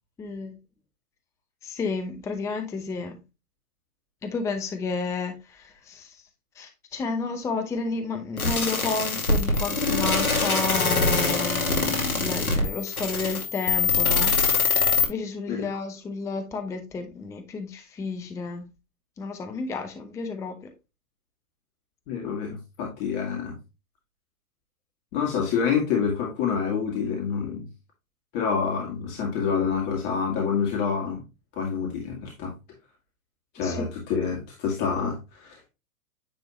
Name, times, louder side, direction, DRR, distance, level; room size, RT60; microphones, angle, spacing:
voice 1, 0.2-0.6 1.6-3.2 4.2-6.2 6.6-14.3 15.1-18.7 19.2-20.7 33.6-33.8, left 4 dB, 5° left, 0.6 m, -31 dB
sound 1, 8.4-15.1, left 4 dB, 80° left, 2.3 m, -23 dB
voice 2, 22.1-23.6 25.1-27.7 28.3-31.2 31.6-32.5 33.5-35.7, left 6 dB, 40° left, 2.1 m, -27 dB
9.5 x 3.5 x 3.0 m
figure-of-eight pair, 110°, 43 cm